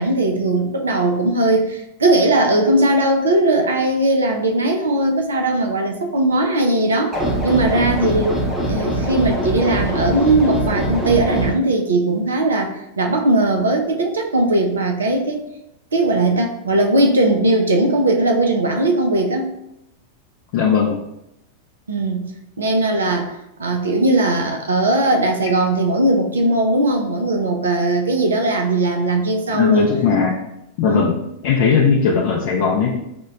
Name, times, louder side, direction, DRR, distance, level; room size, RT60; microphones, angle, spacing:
voice 1, 0.0-8.4 8.6-15.4 15.9-19.5 21.9-22.3 22.6-29.9 30.8-31.1, right 2 dB, 70° right, 3 dB, 0.4 m, -19 dB
sound 1, 7.1-11.5, right 1 dB, 15° right, 0.8 m, -22 dB
voice 2, 20.5-21.0 29.5-30.4 30.8-33.0, left 6 dB, 45° left, -3 dB, 0.5 m, -18 dB
5.0 x 2.1 x 2.3 m, 0.84 s
figure-of-eight pair, 90°, 0 cm